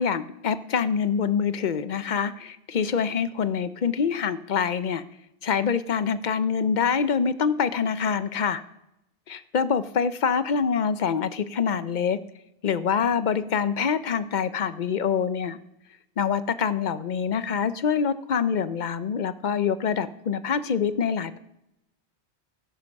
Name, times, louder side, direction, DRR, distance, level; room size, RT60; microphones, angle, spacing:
voice 1, 0.0-5.0 5.4-8.6 9.3-12.2 12.6-15.6 16.2-21.4, left 6 dB, 50° left, 13 dB, 0.7 m, -25 dB
13.5 x 11.0 x 5.3 m, 0.86 s
omnidirectional pair, 1.1 m